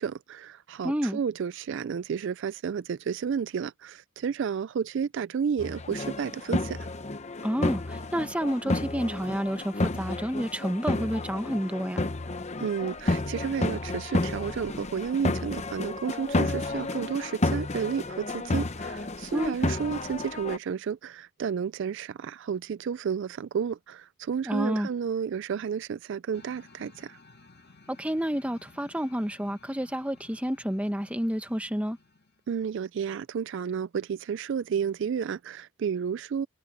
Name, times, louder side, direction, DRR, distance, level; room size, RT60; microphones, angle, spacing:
voice 1, 0.0-6.9 12.6-27.2 32.5-36.5, right 7 dB, 55° right, 0.3 m, -31 dB
voice 2, 0.8-1.2 7.4-12.0 19.3-19.5 24.4-24.9 27.9-32.0, equal, 5° right, 1.0 m, -29 dB
sound 1, 5.6-20.6, left 2 dB, 30° left, 0.8 m, -31 dB
sound 2, 26.3-32.5, left 3 dB, 45° left, 2.1 m, -56 dB
head